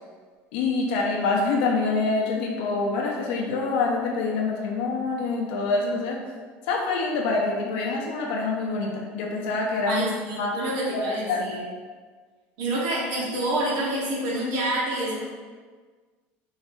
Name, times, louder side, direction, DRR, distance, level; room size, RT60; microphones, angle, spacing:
voice 1, 0.5-6.2 6.7-10.0 10.4-10.5 10.9-11.4, left 3 dB, 85° left, -1 dB, 0.8 m, -26 dB
voice 2, 9.9-11.7 12.6-15.2, right 1 dB, 60° right, -6 dB, 1.5 m, -27 dB
4.7 x 4.0 x 2.7 m, 1.5 s
cardioid pair, 180°, 5 cm